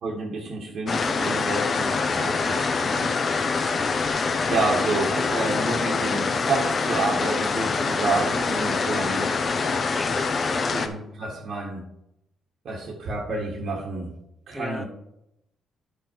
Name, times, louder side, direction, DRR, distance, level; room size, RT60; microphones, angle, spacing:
voice 1, 0.0-3.1 3.4-3.6 4.5-9.3 10.7-11.8 12.6-14.1 14.5-14.9, right 3 dB, 65° right, -3 dB, 1.7 m, -29 dB
sound 1, 0.9-10.9, left 4 dB, 45° left, 1.0 m, -25 dB
voice 2, 9.0-9.3 9.9-10.7 14.5-14.8, left 1 dB, 10° left, 14 dB, 0.5 m, -38 dB
10.0 x 5.2 x 4.7 m, 0.83 s
cardioid pair, 90°, 0 cm